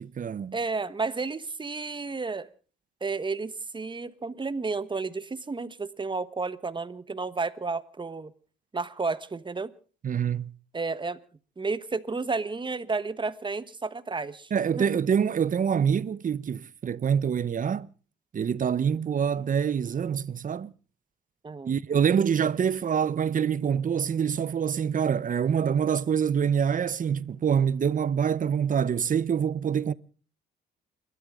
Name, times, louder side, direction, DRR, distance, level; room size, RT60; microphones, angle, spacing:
voice 1, 0.0-0.6 10.0-10.5 14.5-17.9 18.3-20.7 21.6-29.9, right 7 dB, 40° right, 0.8 m, -25 dB
voice 2, 0.5-2.5 3.0-8.3 8.7-9.7 10.7-11.2 11.6-14.9 21.4-21.7, right 4 dB, 25° right, 1.2 m, -32 dB
29.5 x 13.0 x 3.7 m
cardioid pair, 90°, 20 cm